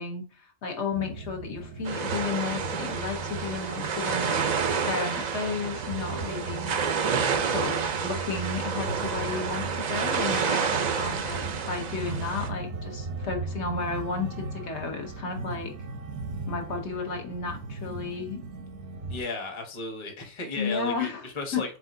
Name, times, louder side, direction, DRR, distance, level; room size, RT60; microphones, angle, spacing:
voice 1, 0.0-6.7 7.4-15.7 16.5-18.4 20.6-21.6, left 4 dB, 70° left, 1.2 m, -33 dB
sound 1, 0.9-19.2, right 3 dB, 80° right, 1.1 m, -37 dB
sound 2, 1.8-12.5, right 6 dB, 50° right, 0.5 m, -29 dB
voice 2, 19.1-21.8, left 3 dB, 30° left, 0.8 m, -34 dB
4.7 x 3.6 x 2.6 m
omnidirectional pair, 1.2 m